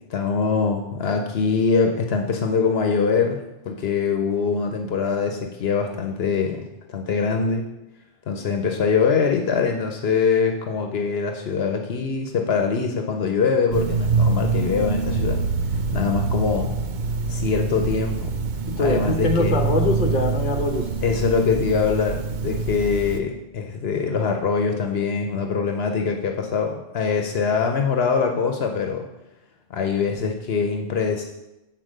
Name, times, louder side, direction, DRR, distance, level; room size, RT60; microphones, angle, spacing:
voice 1, 0.0-6.6 6.9-7.6 8.3-15.4 15.9-16.7 17.3-18.3 18.8-19.6 21.0-29.1 29.7-31.2, left 5 dB, 75° left, 4 dB, 1.0 m, -23 dB
sound 1, 13.7-23.2, right 4 dB, 55° right, 0.7 m, -25 dB
voice 2, 18.7-20.9, left 2 dB, 50° left, 3 dB, 1.1 m, -23 dB
8.0 x 4.3 x 6.5 m, 0.96 s
omnidirectional pair, 1.0 m